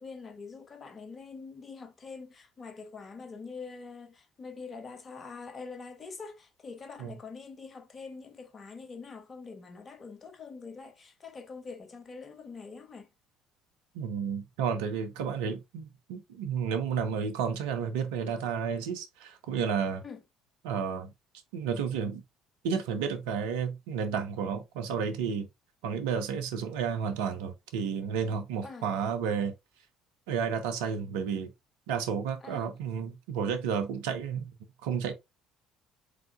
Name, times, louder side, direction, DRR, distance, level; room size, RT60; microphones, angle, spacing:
voice 1, 0.0-13.1 20.0-20.2 28.6-28.9 32.4-32.7, left 4 dB, 35° left, 1.2 m, -44 dB
voice 2, 13.9-20.0 20.6-21.1 21.5-22.2 22.6-25.5 25.8-29.5 30.3-31.5 31.9-34.5 34.8-35.1, right 7 dB, 75° right, 0.8 m, -31 dB
5.0 x 3.7 x 2.4 m
hypercardioid pair, 55°, 0 cm